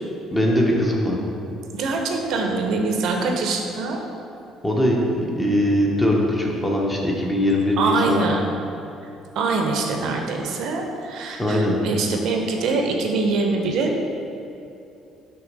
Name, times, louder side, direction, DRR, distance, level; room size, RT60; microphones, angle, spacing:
voice 1, 0.3-1.2 4.6-8.2 11.4-11.8, left 1 dB, 10° left, -1 dB, 0.6 m, -21 dB
voice 2, 1.7-4.0 7.8-8.4 9.4-14.2, right 3 dB, 60° right, 2 dB, 0.7 m, -24 dB
6.0 x 3.5 x 5.2 m, 2.8 s
cardioid pair, 175°, 0 cm